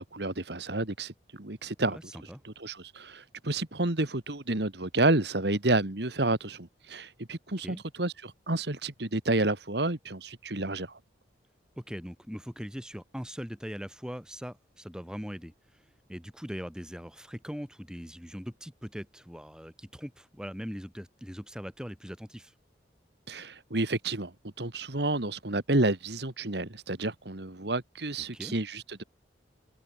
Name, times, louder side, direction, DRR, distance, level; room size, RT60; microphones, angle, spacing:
voice 1, 0.0-2.1 2.4-11.0 23.3-29.0, right 2 dB, 65° right, 2.1 m, -30 dB
voice 2, 1.9-2.4 7.6-7.8 11.8-15.8 16.1-22.5 28.3-28.6, equal, 5° right, 5.4 m, -41 dB
head